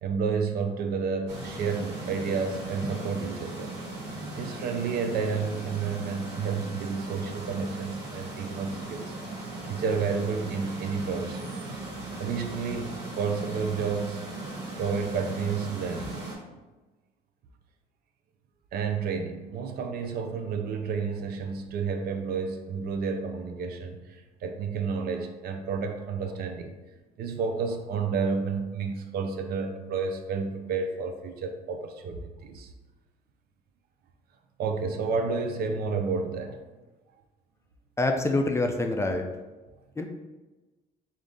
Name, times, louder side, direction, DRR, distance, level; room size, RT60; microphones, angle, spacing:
voice 1, 0.0-3.7 4.4-9.1 9.7-11.5 12.2-14.2 14.8-16.2 18.7-26.7 27.2-32.7 34.6-36.6 39.7-39.8, right 5 dB, 65° right, 5 dB, 0.5 m, -30 dB
sound 1, 1.3-16.3, right 2 dB, 80° right, 1.3 m, -38 dB
voice 2, 38.0-39.2 40.0-40.1, left 2 dB, 15° left, 4 dB, 0.3 m, -26 dB
3.5 x 2.6 x 3.8 m, 1.2 s
cardioid pair, 110°, 17 cm